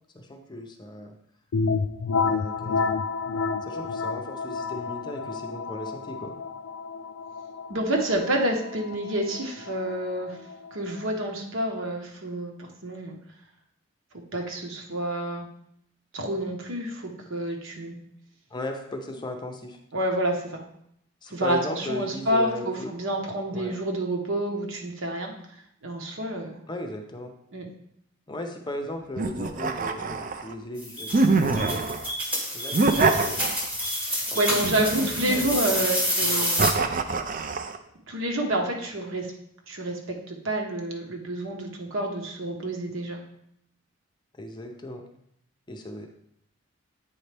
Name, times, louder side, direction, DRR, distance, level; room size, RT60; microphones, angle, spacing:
voice 1, 0.1-1.2 2.2-2.9 3.6-6.3 18.5-19.8 21.2-22.9 23.5-23.7 26.7-27.3 28.3-31.9 32.5-33.5 34.3-35.4 35.7-35.9 36.2-36.5 44.4-45.1 45.7-46.1, left 1 dB, 20° left, 3 dB, 0.6 m, -37 dB
sound 1, 1.5-11.1, left 4 dB, 75° left, 0.4 m, -30 dB
voice 2, 7.7-10.4 10.7-13.1 14.3-15.5 16.1-17.9 19.9-20.6 21.3-25.3 25.8-26.5 27.5-27.7 34.1-36.8 38.1-39.3 39.7-43.2, right 1 dB, 70° right, 2 dB, 1.1 m, -28 dB
sound 2, 29.2-30.5 31.1-32.1 32.7-33.9 34.6-35.7 36.6-37.8, right 3 dB, 40° right, 0.4 m, -25 dB
sound 3, 30.8-36.7, equal, 5° right, 1.0 m, -28 dB
8.7 x 4.1 x 3.4 m, 0.73 s
head